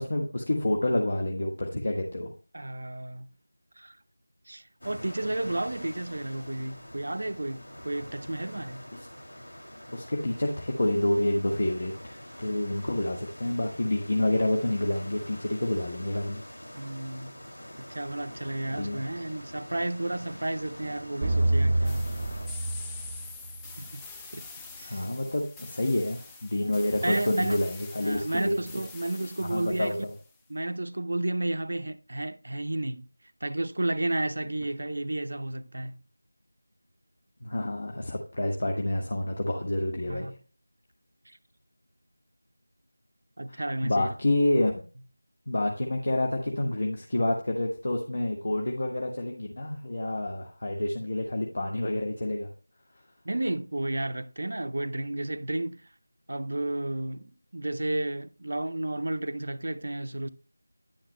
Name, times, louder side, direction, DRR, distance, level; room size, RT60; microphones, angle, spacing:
voice 1, 0.0-2.3 9.9-16.4 18.8-19.0 24.8-28.5 29.4-30.1 37.4-40.3 43.5-44.7 45.5-52.5, left 1 dB, 45° left, 1.5 m, -28 dB
voice 2, 2.5-3.3 3.8-4.0 4.5-8.9 16.7-17.3 17.8-22.1 23.8-24.5 24.8-25.1 26.6-26.7 27.0-27.6 28.0-30.0 30.5-33.1 33.4-36.0 40.0-40.4 41.3-41.4 43.4-44.1 53.2-55.9 56.3-60.3, right 1 dB, 55° right, 0.6 m, -32 dB
sound 1, 4.8-22.5, equal, 70° left, 2.6 m, -45 dB
sound 2, 21.2-23.9, right 1 dB, 25° right, 0.9 m, -27 dB
sound 3, 21.8-30.3, left 4 dB, 5° left, 0.4 m, -45 dB
10.5 x 10.5 x 2.2 m
figure-of-eight pair, 170°, 0 cm